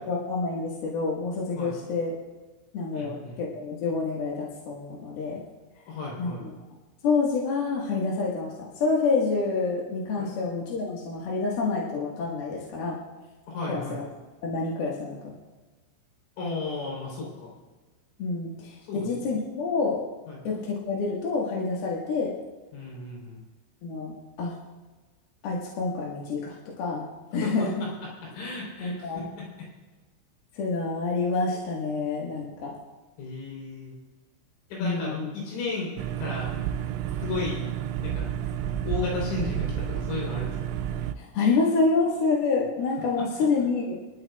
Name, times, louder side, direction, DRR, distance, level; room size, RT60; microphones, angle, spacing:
voice 1, 0.1-2.1 2.7-5.4 6.2-6.5 7.0-13.0 13.7-14.0 14.4-15.4 18.2-20.0 20.4-22.3 23.8-24.6 25.4-27.1 27.3-27.7 28.8-29.3 30.5-32.7 34.8-35.3 41.2-44.0, left 4 dB, 60° left, -5 dB, 3.0 m, -28 dB
voice 2, 2.9-3.4 5.9-6.5 10.2-10.4 10.8-11.0 13.5-14.0 16.4-17.5 18.9-19.4 20.3-20.4 22.7-23.4 27.4-29.7 33.2-33.9 34.7-36.5 37.1-37.6 38.0-38.3 38.8-40.7 43.2-43.3, left 3 dB, 85° left, -4 dB, 6.3 m, -34 dB
sound 1, 36.0-41.1, right 10 dB, 80° right, 2.7 m, -30 dB
25.5 x 13.0 x 2.4 m, 1.3 s
omnidirectional pair, 5.8 m